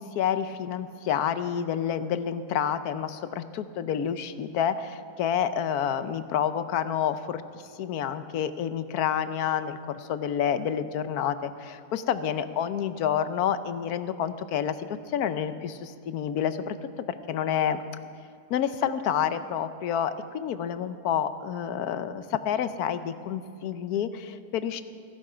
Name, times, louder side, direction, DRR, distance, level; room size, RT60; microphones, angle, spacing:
voice 1, 0.0-7.4 7.8-16.8 17.1-17.8 18.5-24.8, left 9 dB, 70° left, 12 dB, 1.2 m, -29 dB
16.0 x 15.5 x 5.0 m, 2.4 s
omnidirectional pair, 1.7 m